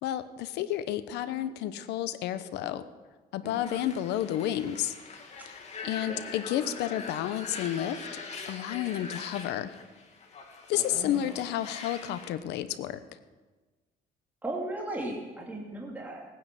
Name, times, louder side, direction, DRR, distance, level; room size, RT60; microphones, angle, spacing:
voice 1, 0.0-2.8 3.3-4.9 5.8-8.0 8.5-9.7 10.7-13.0, left 12 dB, 85° left, 13 dB, 1.0 m, -31 dB
sound 1, 3.6-12.3, left 4 dB, 40° left, 2.6 m, -43 dB
voice 2, 5.8-6.3 10.7-11.4 14.4-16.2, right 1 dB, 10° right, -2 dB, 2.6 m, -37 dB
18.0 x 9.7 x 7.6 m, 1.3 s
cardioid pair, 110°, 17 cm